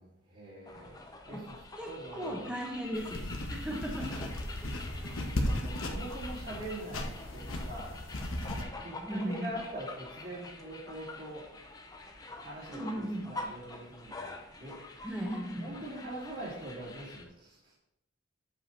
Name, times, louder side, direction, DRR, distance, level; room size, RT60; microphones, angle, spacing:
voice 1, 0.0-2.6 3.7-4.2 5.3-8.0 8.4-11.5 12.4-14.9 15.6-17.7, right 1 dB, 45° right, -10 dB, 2.5 m, -44 dB
sound 1, 0.6-17.2, left 2 dB, 20° left, 0.7 m, -46 dB
voice 2, 1.8-4.1 5.0-5.1 9.0-9.5 12.7-13.3 15.0-15.8, equal, 5° right, -2 dB, 1.1 m, -37 dB
sound 2, 2.9-8.6, left 1 dB, 80° left, 1.2 m, -36 dB
8.3 x 4.9 x 4.2 m, 0.80 s
head